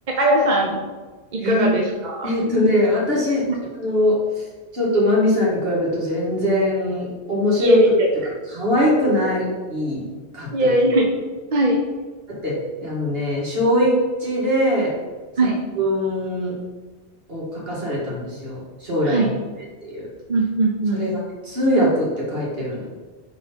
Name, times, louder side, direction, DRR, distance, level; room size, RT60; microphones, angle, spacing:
voice 1, 0.2-0.8 1.3-2.3 7.6-8.1 10.5-11.1 11.5-11.8 15.4-15.6 19.0-19.3 20.3-21.0, right 1 dB, 45° right, 0 dB, 0.9 m, -19 dB
voice 2, 1.4-1.7 2.2-3.5 3.7-4.4 4.7-7.8 8.5-10.0 10.3-10.7 12.3-13.9 14.2-14.9 15.8-16.5 17.3-19.3 19.6-19.7 19.9-20.1 20.9-22.8, left 1 dB, 65° right, -6 dB, 2.6 m, -21 dB
9.5 x 4.3 x 4.3 m, 1.3 s
omnidirectional pair, 1.1 m